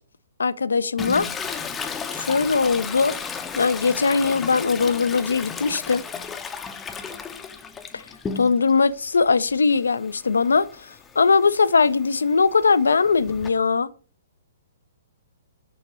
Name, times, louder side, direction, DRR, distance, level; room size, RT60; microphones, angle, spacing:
voice 1, 0.4-1.3 2.1-3.2 3.6-6.0 7.9-8.0 8.4-10.7 11.2-13.9, left 4 dB, 65° left, 0.3 m, -20 dB
Toilet flush, 1.0-8.8 9.2-13.5, left 5 dB, 15° left, 0.5 m, -35 dB
6.9 x 2.9 x 5.0 m
figure-of-eight pair, 120°, 0 cm